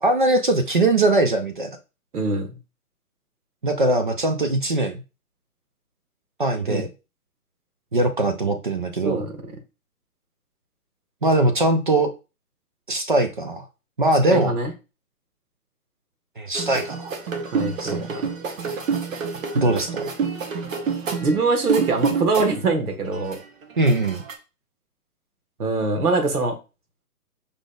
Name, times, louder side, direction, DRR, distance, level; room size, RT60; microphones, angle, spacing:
voice 1, 0.0-1.8 3.6-5.0 6.4-6.9 7.9-9.2 11.2-12.1 12.9-13.7 14.0-14.5 16.4-17.1 17.8-18.0 19.5-20.0 23.8-24.2, right 2 dB, 35° right, 6 dB, 0.4 m, -21 dB
voice 2, 2.1-2.5 6.7-6.8 9.0-9.3 14.2-14.7 17.5-18.3 21.2-23.4 25.6-26.6, right 3 dB, 75° right, 6 dB, 1.5 m, -23 dB
sound 1, 16.5-22.7 23.0-24.3, right 6 dB, 55° right, 1.1 m, -28 dB
5.1 x 3.6 x 2.3 m, 0.30 s
hypercardioid pair, 145°, 46 cm